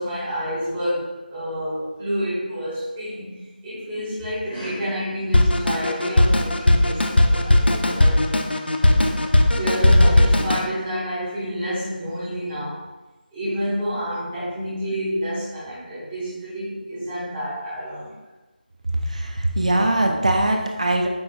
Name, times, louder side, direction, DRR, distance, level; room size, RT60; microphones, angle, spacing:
voice 1, 0.0-8.3 8.8-9.3 9.6-12.8 13.3-18.1, equal, 5° right, -12 dB, 0.7 m, -29 dB
Drum kit, 5.3-10.7, left 1 dB, 85° left, 0.4 m, -17 dB
voice 2, 19.1-21.1, right 1 dB, 45° right, 2 dB, 0.3 m, -21 dB
4.9 x 2.4 x 2.3 m, 1.1 s
figure-of-eight pair, 175°, 5 cm